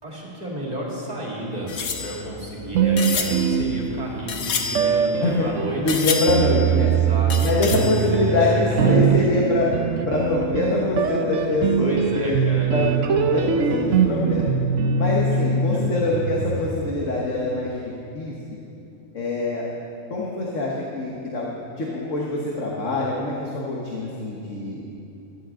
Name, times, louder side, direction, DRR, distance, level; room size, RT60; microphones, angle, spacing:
voice 1, 0.0-5.9 6.8-9.2 11.8-12.7 15.7-16.0, right 1 dB, 30° right, -4 dB, 2.7 m, -33 dB
sound 1, 1.7-5.5 5.9-6.8 7.3-8.4 8.8-8.9 9.1-9.2, left 5 dB, 90° left, 1.4 m, -30 dB
sound 2, 2.7-4.2 4.7-17.0, right 6 dB, 70° right, 1.1 m, -22 dB
voice 2, 5.2-6.9 7.4-14.5 15.0-18.6 19.1-19.7 20.1-21.5 21.8-24.8, left 2 dB, 65° left, -3 dB, 1.7 m, -24 dB
17.0 x 13.0 x 3.8 m, 2.8 s
omnidirectional pair, 1.4 m